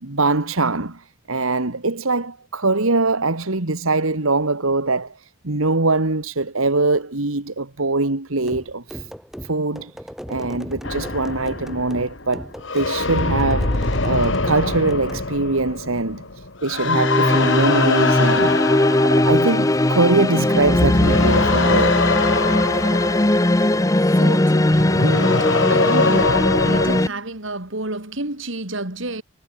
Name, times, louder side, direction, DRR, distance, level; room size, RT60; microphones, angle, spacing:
voice 1, 0.0-9.1 9.4-9.9 10.3-18.6 19.0-22.0, right 3 dB, 80° right, 2.0 m, -22 dB
sound 1, 8.4-15.3, equal, ahead, 4.3 m, -36 dB
sound 2, 10.8-20.2 20.6-27.0, left 3 dB, 60° left, 2.1 m, -23 dB
sound 3, 16.8-27.1, left 1 dB, 15° left, 0.6 m, -19 dB
voice 2, 24.0-29.2, right 2 dB, 65° right, 3.6 m, -30 dB
head